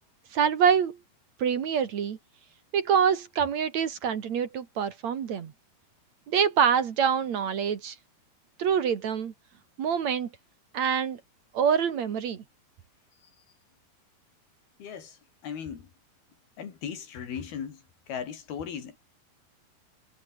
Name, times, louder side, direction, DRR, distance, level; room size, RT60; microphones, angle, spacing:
voice 1, 0.3-1.0 1.4-2.2 2.7-5.5 6.3-8.0 8.6-9.3 9.8-10.3 10.7-11.2 11.5-12.4, right 7 dB, 55° right, 2.7 m, -25 dB
voice 2, 15.4-15.8 16.6-17.8 18.1-19.0, left 7 dB, 85° left, 5.3 m, -37 dB
omnidirectional pair, 4.3 m